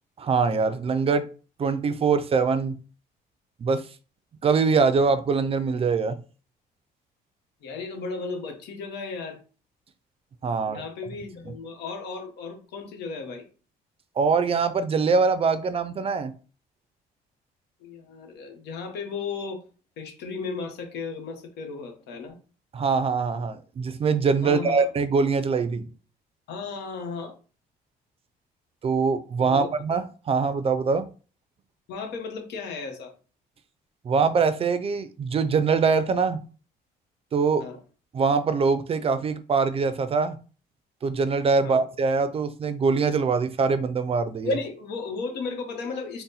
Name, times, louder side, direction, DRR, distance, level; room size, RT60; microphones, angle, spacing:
voice 1, 0.2-1.3 1.6-2.8 3.6-3.9 4.4-6.2 10.4-10.8 14.2-16.3 22.7-25.9 28.8-31.1 34.0-36.4 37.3-37.7 38.1-40.4 41.0-44.5, right 5 dB, 35° right, 0.4 m, -23 dB
voice 2, 7.6-9.4 10.7-13.5 17.8-19.6 20.0-22.4 24.4-24.9 26.5-27.3 29.4-29.7 31.9-33.1 37.6-37.8 41.6-41.9 44.4-46.2, left 4 dB, 85° left, 1.0 m, -34 dB
4.0 x 2.1 x 3.9 m
cardioid pair, 110°, 17 cm